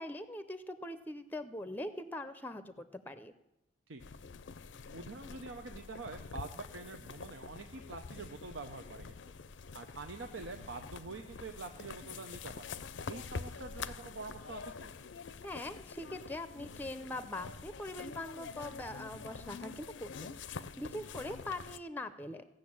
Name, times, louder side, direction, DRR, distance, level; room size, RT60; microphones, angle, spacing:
voice 1, 0.0-3.3 15.4-22.4, left 1 dB, 10° left, 12 dB, 0.5 m, -42 dB
sound 1, 4.0-21.8, left 5 dB, 75° left, 0.5 m, -46 dB
voice 2, 4.9-9.2 9.7-12.7 13.1-14.9, right 3 dB, 80° right, 5 dB, 0.8 m, -46 dB
16.0 x 6.5 x 8.7 m, 0.89 s
head